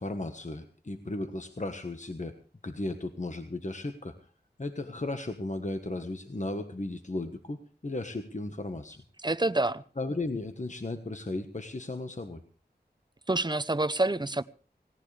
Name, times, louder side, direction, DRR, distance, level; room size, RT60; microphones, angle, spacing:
voice 1, 0.0-2.4 2.6-4.2 4.6-9.0 10.0-12.4, left 2 dB, 45° left, 7 dB, 1.3 m, -35 dB
voice 2, 9.2-9.8 13.3-14.4, right 2 dB, 25° right, 13 dB, 0.8 m, -27 dB
18.0 x 18.0 x 3.3 m, 0.38 s
wide cardioid pair, 50°, 17 cm